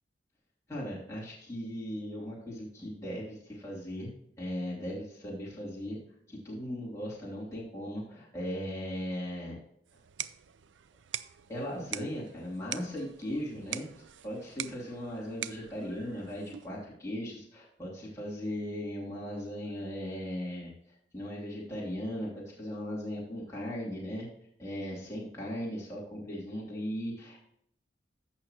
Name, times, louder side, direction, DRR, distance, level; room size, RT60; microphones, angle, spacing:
voice 1, 0.7-4.1 4.4-6.0 6.3-9.6 11.5-13.9 14.2-24.3 24.6-27.4, equal, 15° left, -6 dB, 3.0 m, -38 dB
sound 1, 9.9-16.8, right 11 dB, 85° right, 0.5 m, -43 dB
15.0 x 5.9 x 2.9 m, 0.71 s
head